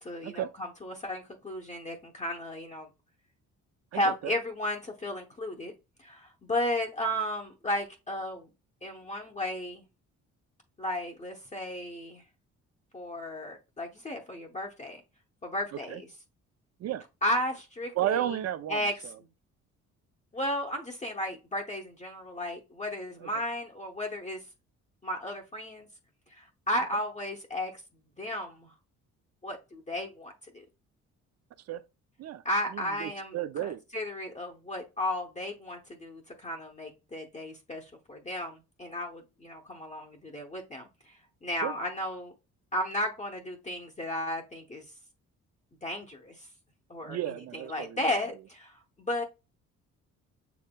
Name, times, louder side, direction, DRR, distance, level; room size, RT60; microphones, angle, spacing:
voice 1, 0.0-2.9 3.9-5.7 6.0-8.5 8.8-9.8 10.8-12.2 12.9-15.0 15.4-16.1 17.2-18.4 18.7-18.9 20.3-24.4 25.0-25.9 26.4-27.8 28.2-28.7 29.4-30.6 32.4-33.4 33.9-40.9 41.4-42.3 42.7-44.8 45.8-46.5 46.9-47.2 47.5-49.2, left 1 dB, 25° left, 0.8 m, -34 dB
voice 2, 3.9-4.4 15.9-16.0 16.8-17.0 18.0-19.2 23.2-23.3 31.7-31.8 32.2-32.4 32.7-33.8 41.6-41.8 47.0-48.2, right 11 dB, 55° right, 0.5 m, -33 dB
7.0 x 3.2 x 2.2 m
cardioid pair, 90°, 30 cm